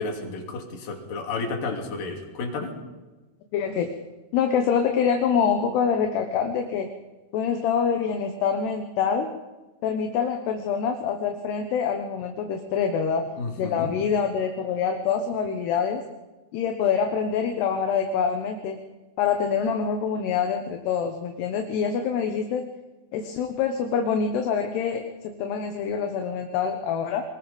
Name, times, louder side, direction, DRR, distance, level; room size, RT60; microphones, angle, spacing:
voice 1, 0.0-2.7 13.4-13.9, left 3 dB, 55° left, 2 dB, 4.4 m, -31 dB
voice 2, 3.5-3.9 4.3-6.9 7.3-9.3 9.8-16.0 16.5-18.8 19.2-22.7 23.1-27.2, left 6 dB, 75° left, 4 dB, 3.3 m, -25 dB
25.0 x 21.0 x 5.3 m, 1.2 s
omnidirectional pair, 5.0 m